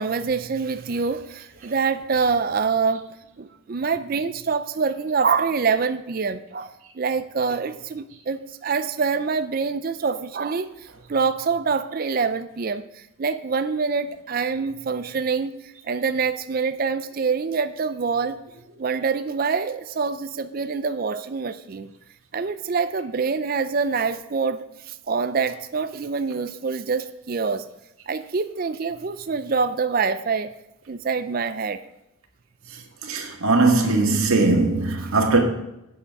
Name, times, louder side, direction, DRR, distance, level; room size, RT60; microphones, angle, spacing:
voice 1, 0.0-3.0 3.4-10.7 11.1-15.6 15.8-18.4 18.8-21.9 22.3-27.6 28.1-30.5 30.9-31.8, right 5 dB, 45° right, 0.4 m, -25 dB
voice 2, 33.0-35.4, right 3 dB, 85° right, 1.8 m, -19 dB
8.5 x 7.9 x 4.7 m
head